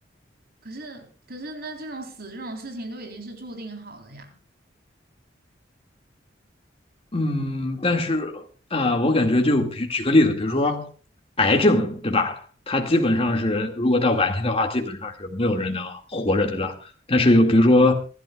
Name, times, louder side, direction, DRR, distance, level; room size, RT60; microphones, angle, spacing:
voice 1, 0.6-4.4, right 2 dB, 55° right, 3.7 m, -37 dB
voice 2, 7.1-8.4 8.7-10.9 11.4-12.4 12.7-17.9, left 2 dB, 30° left, 2.1 m, -21 dB
28.0 x 11.5 x 2.3 m
head